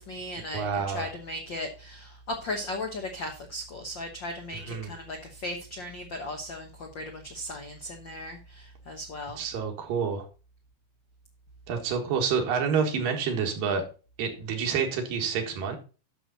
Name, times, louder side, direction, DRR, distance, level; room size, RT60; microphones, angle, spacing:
voice 1, 0.0-9.4, left 1 dB, 70° left, 1.1 m, -37 dB
voice 2, 0.5-1.1 4.5-4.9 9.4-10.2 11.7-13.8 14.2-15.8, right 6 dB, 85° right, 3.3 m, -28 dB
11.0 x 6.6 x 4.1 m
omnidirectional pair, 3.9 m